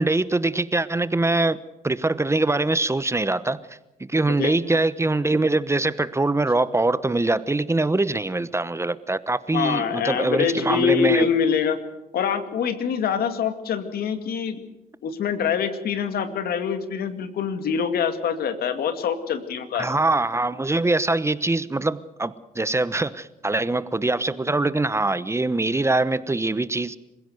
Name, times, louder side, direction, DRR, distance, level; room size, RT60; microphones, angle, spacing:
voice 1, 0.0-1.6 1.8-11.3 19.7-27.0, right 2 dB, 15° right, 15 dB, 1.0 m, -23 dB
voice 2, 9.5-11.8 12.1-14.6 15.0-19.9, left 7 dB, 80° left, 9 dB, 2.3 m, -25 dB
26.5 x 16.0 x 7.9 m, 0.97 s
cardioid pair, 80°, 16 cm